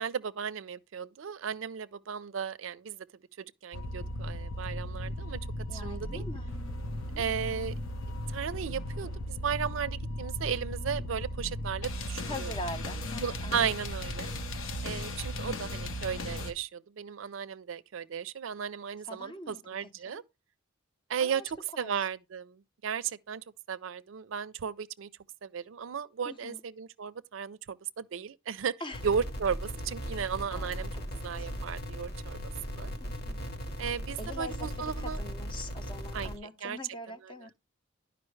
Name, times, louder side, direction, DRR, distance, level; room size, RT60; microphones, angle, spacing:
voice 1, 0.0-3.1 3.4-5.4 5.7-6.2 7.2-7.7 8.3-12.5 13.2-14.3 14.8-20.2 21.1-25.1 25.4-28.8 29.0-30.9 31.2-32.4 32.7-32.9 33.8-35.2 36.1-36.3 36.6-36.8, right 7 dB, 70° right, 0.4 m, -35 dB
sound 1, 3.7-16.5, left 1 dB, 85° left, 0.9 m, -36 dB
voice 2, 5.7-6.5 6.8-7.2 12.2-13.8 19.0-20.2 21.2-22.1 26.2-26.6 28.8-29.0 30.1-31.5 33.0-33.5 34.2-37.5, left 1 dB, 25° left, 0.7 m, -44 dB
sound 2, 28.9-36.4, equal, 50° left, 1.2 m, -38 dB
11.0 x 5.1 x 3.2 m
head